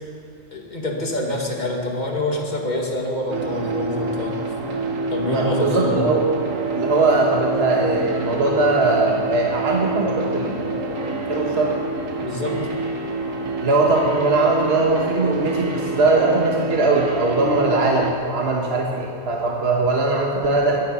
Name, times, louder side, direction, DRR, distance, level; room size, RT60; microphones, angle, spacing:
voice 1, 0.5-4.4 5.1-6.1 12.2-12.6, left 1 dB, 35° left, 0 dB, 2.1 m, -26 dB
sound 1, 3.3-18.1, right 2 dB, 80° right, 1.6 m, -27 dB
voice 2, 5.2-6.3 6.7-11.7 13.6-20.8, right 3 dB, 55° right, -1 dB, 1.6 m, -20 dB
22.0 x 10.5 x 5.7 m, 2.7 s
omnidirectional pair, 1.3 m